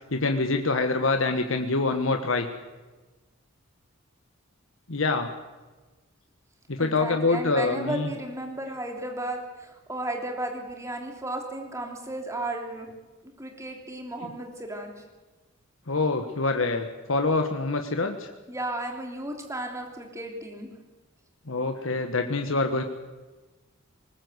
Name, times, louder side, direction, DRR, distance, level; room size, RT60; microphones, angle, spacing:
voice 1, 0.1-2.5 4.9-5.3 6.7-8.1 15.9-18.3 21.5-22.8, left 3 dB, 70° left, 5 dB, 1.4 m, -25 dB
voice 2, 6.8-12.9 13.2-14.9 18.5-20.7, right 1 dB, 15° right, 2 dB, 3.1 m, -34 dB
20.5 x 19.0 x 8.1 m, 1.2 s
head